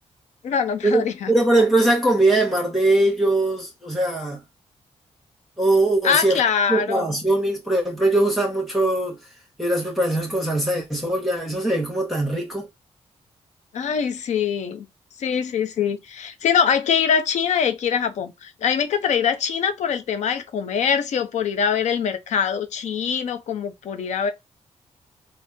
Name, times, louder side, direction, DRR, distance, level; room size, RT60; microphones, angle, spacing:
voice 1, 0.4-1.3 6.0-7.1 13.7-14.9 15.2-24.3, left 7 dB, 75° left, 0.6 m, -23 dB
voice 2, 1.3-4.4 5.6-6.4 6.7-9.2 9.6-12.7, right 2 dB, ahead, 0.9 m, -21 dB
3.4 x 2.0 x 2.6 m
wide cardioid pair, 125°, 12 cm